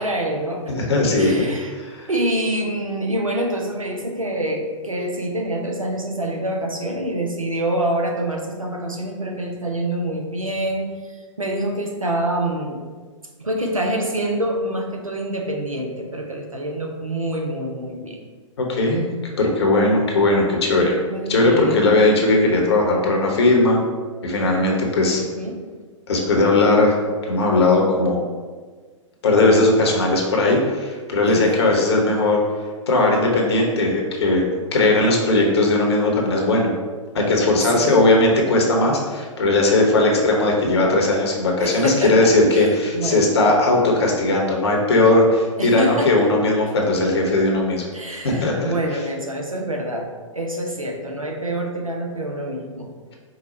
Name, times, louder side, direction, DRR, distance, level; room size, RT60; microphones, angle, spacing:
voice 1, 0.0-0.8 1.1-1.7 2.1-11.1 11.4-12.8 13.4-18.2 21.1-21.9 25.2-25.6 31.3-31.7 37.7-37.9 41.6-43.3 45.6-46.1 47.9-50.1 50.3-52.9, right 1 dB, 85° right, 1 dB, 0.7 m, -26 dB
voice 2, 0.7-2.1 18.6-19.1 19.4-20.9 21.3-23.8 24.2-25.2 26.1-27.0 27.2-28.2 29.2-32.4 32.9-36.7 37.1-47.8 48.2-48.7, left 2 dB, 55° left, 0 dB, 0.9 m, -18 dB
4.9 x 2.2 x 4.1 m, 1.5 s
figure-of-eight pair, 115°, 17 cm